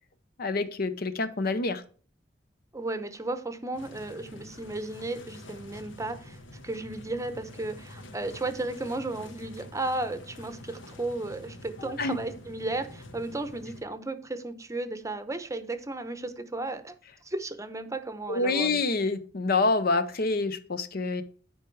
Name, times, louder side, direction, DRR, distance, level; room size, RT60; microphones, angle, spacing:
voice 1, 0.4-1.8 11.8-12.2 18.3-21.2, left 3 dB, 55° left, 0.7 m, -27 dB
voice 2, 2.7-16.9 17.2-18.8, right 2 dB, 15° right, 0.8 m, -34 dB
sound 1, 3.7-13.8, left 1 dB, 85° left, 1.2 m, -47 dB
10.0 x 4.7 x 4.6 m
head